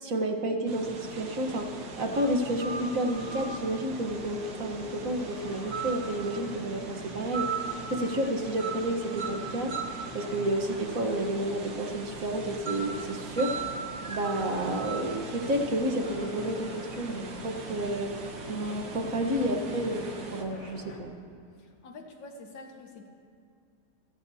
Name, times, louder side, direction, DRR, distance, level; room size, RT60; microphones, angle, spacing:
voice 1, 0.0-1.7 2.0-7.5 7.9-9.7 10.1-13.6 14.1-18.1 18.5-21.1, right 1 dB, 50° right, 3 dB, 1.5 m, -30 dB
sound 1, 0.7-20.4, right 4 dB, 85° right, 2.1 m, -43 dB
sound 2, 1.1-1.2 2.1-3.7 5.7-6.1 7.3-7.9 8.6-8.9 9.2-10.1 12.7-12.9 13.4-15.2, right 6 dB, 30° right, 1.0 m, -36 dB
sound 3, 1.4-21.0, left 2 dB, 45° left, 1.5 m, -47 dB
voice 2, 21.6-23.1, left 2 dB, 80° left, 2 dB, 2.1 m, -46 dB
27.5 x 15.5 x 2.8 m, 2.4 s
omnidirectional pair, 2.0 m